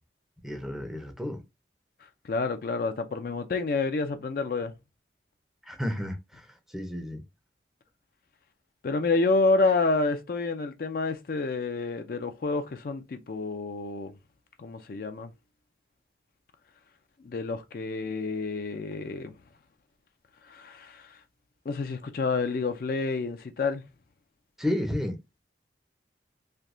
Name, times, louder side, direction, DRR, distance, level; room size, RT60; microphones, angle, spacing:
voice 1, 0.4-1.4 5.7-6.4 6.7-7.2 24.6-25.2, left 1 dB, ahead, 0.5 m, -31 dB
voice 2, 2.2-4.7 8.8-14.1 14.6-15.3 17.2-19.3 20.5-21.2 21.7-23.8, left 3 dB, 50° left, 0.4 m, -28 dB
3.3 x 2.8 x 2.5 m
head